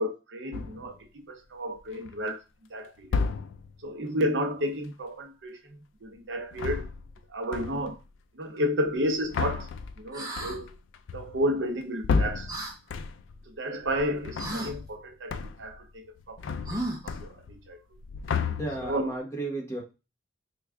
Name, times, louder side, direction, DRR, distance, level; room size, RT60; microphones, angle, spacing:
voice 1, 0.0-2.4 2.7-3.2 3.8-6.9 7.3-8.0 8.3-9.7 10.0-10.7 11.1-12.5 13.5-16.4 17.0-17.8 18.8-19.1, equal, 70° right, 4 dB, 0.7 m, -32 dB
sound 1, 0.5-1.0 1.8-2.3 3.0-3.8 6.4-7.2 7.5-8.0 8.9-13.4 13.8-15.0 15.3-15.8 16.0-17.7 17.9-19.1, left 5 dB, 75° left, 0.3 m, -33 dB
sound 2, 10.1-10.6 12.5-12.7 14.4-14.7 16.6-17.2, right 1 dB, 20° right, 0.7 m, -34 dB
voice 2, 18.6-19.8, right 2 dB, 15° left, -2 dB, 0.9 m, -33 dB
3.3 x 2.3 x 3.4 m, 0.28 s
head